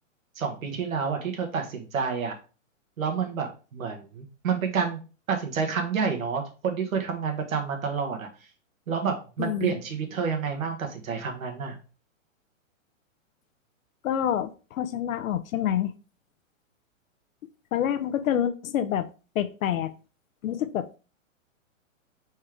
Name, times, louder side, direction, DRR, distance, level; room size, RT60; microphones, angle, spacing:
voice 1, 0.3-2.3 3.0-5.0 5.3-8.3 8.9-11.8, right 6 dB, 90° right, 3 dB, 1.5 m, -29 dB
voice 2, 9.4-9.8 14.0-15.9 17.7-19.1 19.3-19.9 20.4-21.0, left 10 dB, 85° left, 11 dB, 0.6 m, -27 dB
4.2 x 3.4 x 3.7 m, 0.35 s
hypercardioid pair, 160°, 40 cm